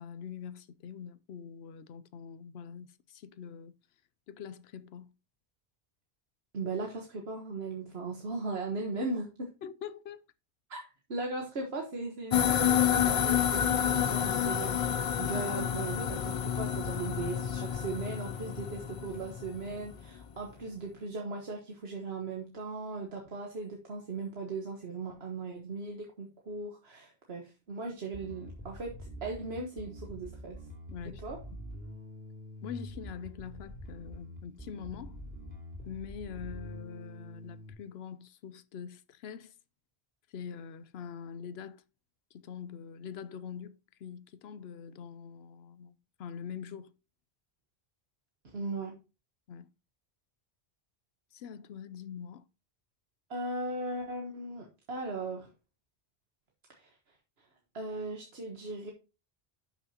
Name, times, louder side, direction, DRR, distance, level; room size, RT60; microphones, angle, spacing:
voice 1, 0.0-3.7 4.3-5.1 9.6-10.3 30.9-31.2 32.6-35.2 35.9-39.5 40.3-41.8 42.3-46.9 49.5-49.7 51.3-52.4, left 7 dB, 75° left, 0.9 m, -44 dB
voice 2, 6.5-9.5 10.7-10.8 11.1-30.6 31.2-31.4 48.4-49.0 53.3-55.5 56.7-56.9 57.7-58.9, right 3 dB, 70° right, 1.5 m, -38 dB
sound 1, 12.3-19.9, left 9 dB, 55° left, 0.4 m, -29 dB
Bass guitar, 28.1-37.7, equal, 10° left, 2.8 m, -46 dB
11.5 x 6.1 x 2.8 m
omnidirectional pair, 1.1 m